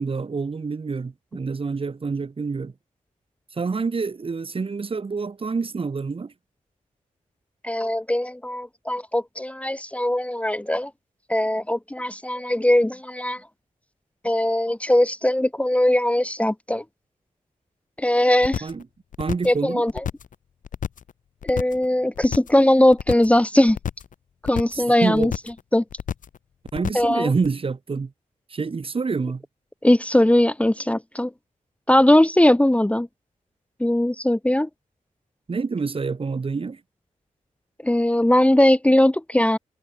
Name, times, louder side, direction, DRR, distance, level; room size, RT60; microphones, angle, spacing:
voice 1, 0.0-2.7 3.5-6.3 18.6-18.9 19.2-19.9 24.7-25.3 26.7-28.1 28.5-29.4 35.5-36.8, right 4 dB, 40° right, 1.9 m, -27 dB
voice 2, 7.6-10.9 11.3-13.4 14.2-16.8 18.0-18.7 19.4-19.9 21.4-23.8 24.4-25.3 25.7-25.8 26.9-27.3 29.8-31.3 31.9-33.1 33.8-34.7 37.8-39.6, left 1 dB, 10° left, 1.1 m, -20 dB
sound 1, 18.4-18.8 19.1-19.6 19.9-20.3 20.6-21.1 21.4-21.9 22.2-22.6 22.9-23.4 23.7-24.1 24.4-24.8 25.1-25.6 25.9-26.4 26.7-27.1 27.4-27.5, left 8 dB, 75° left, 0.7 m, -30 dB
wide cardioid pair, 105°, 14 cm